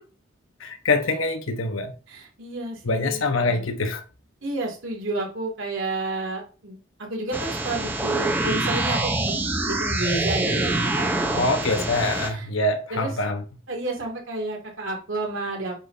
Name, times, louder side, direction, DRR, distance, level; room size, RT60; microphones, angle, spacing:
voice 1, 0.6-1.9 2.8-4.0 11.4-13.4, left 2 dB, 90° left, 1.1 m, -24 dB
voice 2, 2.1-3.7 4.4-9.4 9.6-11.9 12.1-12.5 12.9-13.1 13.7-15.8, right 2 dB, 80° right, 2.5 m, -31 dB
sound 1, 7.3-12.3, right 2 dB, 10° right, 0.9 m, -25 dB
8.9 x 5.9 x 2.8 m
head